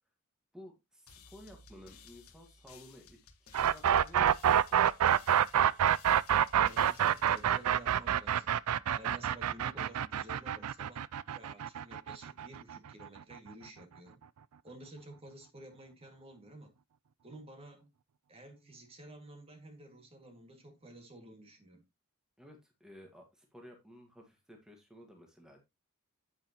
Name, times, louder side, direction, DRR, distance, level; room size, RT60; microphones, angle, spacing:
voice 1, 0.5-4.8 22.4-25.6, equal, 5° right, 1.8 m, -55 dB
sound 1, 1.1-8.6, left 6 dB, 75° left, 1.5 m, -58 dB
sound 2, 3.5-13.4, right 9 dB, 85° right, 0.4 m, -27 dB
voice 2, 6.6-8.6 9.0-14.2 14.6-16.7 17.2-17.9 18.3-21.8, right 1 dB, 25° right, 2.1 m, -52 dB
8.9 x 8.5 x 3.0 m
head